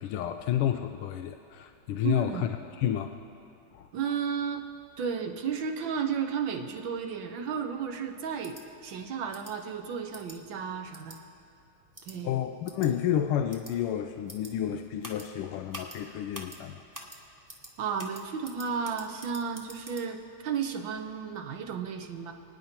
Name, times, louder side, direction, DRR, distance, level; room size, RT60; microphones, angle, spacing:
voice 1, 0.0-2.5 2.8-3.2 3.7-3.9 12.2-16.8, left 10 dB, 90° left, 7 dB, 1.5 m, -30 dB
voice 2, 2.0-2.5 3.9-4.6 5.0-8.6 8.8-11.2 12.1-12.4 17.8-22.3, right 6 dB, 65° right, 5 dB, 1.7 m, -33 dB
sound 1, 8.4-8.6 9.3-9.5 10.1-10.4 10.9-11.2 11.9-12.1 12.6-12.9 13.5-13.7 14.3-14.5 15.0-15.3 15.7-16.0 16.3-16.6 16.9-17.2 17.5-17.7 18.0-20.0, equal, 10° right, 0.9 m, -45 dB
28.5 x 9.6 x 4.4 m, 2.5 s
omnidirectional pair, 2.4 m